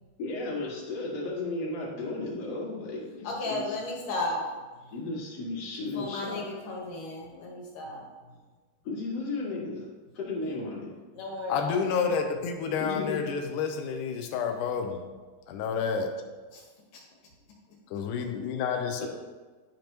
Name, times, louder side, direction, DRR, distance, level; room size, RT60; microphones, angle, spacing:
voice 1, 0.2-3.6 4.9-6.4 8.8-9.8 10.1-10.9 12.8-13.2 19.0-19.1, left 3 dB, 50° left, -5 dB, 2.3 m, -34 dB
voice 2, 3.2-4.4 6.0-8.0 11.1-11.9 16.5-16.6, left 2 dB, 65° left, -2 dB, 2.7 m, -34 dB
voice 3, 11.5-15.0 15.5-16.2 17.9-19.1, left 6 dB, 90° left, 4 dB, 1.8 m, -29 dB
10.5 x 5.2 x 3.0 m, 1.3 s
omnidirectional pair, 4.4 m